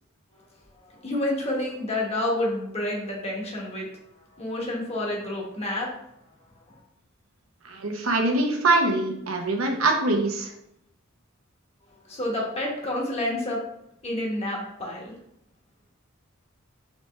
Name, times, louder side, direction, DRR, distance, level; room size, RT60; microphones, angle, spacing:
voice 1, 0.7-6.8 11.9-13.6 14.0-15.1, left 1 dB, 30° left, -2 dB, 1.1 m, -30 dB
voice 2, 7.6-10.5, right 2 dB, 90° right, 2 dB, 0.8 m, -23 dB
4.1 x 3.2 x 3.2 m, 0.78 s
head